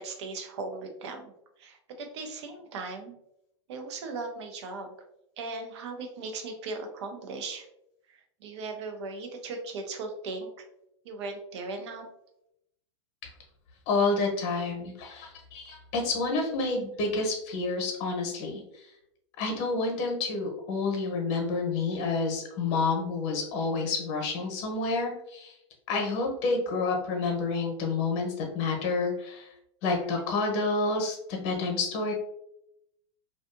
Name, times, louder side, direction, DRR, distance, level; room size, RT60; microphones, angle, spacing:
voice 1, 0.0-1.3 1.6-3.2 3.7-4.9 5.4-7.7 8.1-10.5 11.0-12.1, right 3 dB, 65° right, 5 dB, 0.6 m, -38 dB
voice 2, 13.9-18.9 19.4-25.5 25.9-29.5 29.8-32.1, left 3 dB, 40° left, 2 dB, 0.8 m, -29 dB
2.6 x 2.3 x 2.5 m, 0.79 s
supercardioid pair, 140°, 15 cm